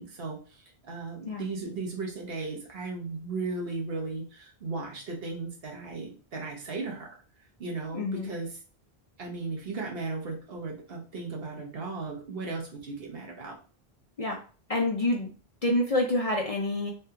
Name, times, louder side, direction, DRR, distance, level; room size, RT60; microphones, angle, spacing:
voice 1, 0.0-7.2 7.6-8.6 9.2-13.6, right 3 dB, 70° right, 0 dB, 1.1 m, -36 dB
voice 2, 7.9-8.3 14.2-14.4 14.7-15.3 15.6-16.9, left 1 dB, 50° left, 0 dB, 0.5 m, -27 dB
3.3 x 2.3 x 2.7 m, 0.37 s
omnidirectional pair, 1.0 m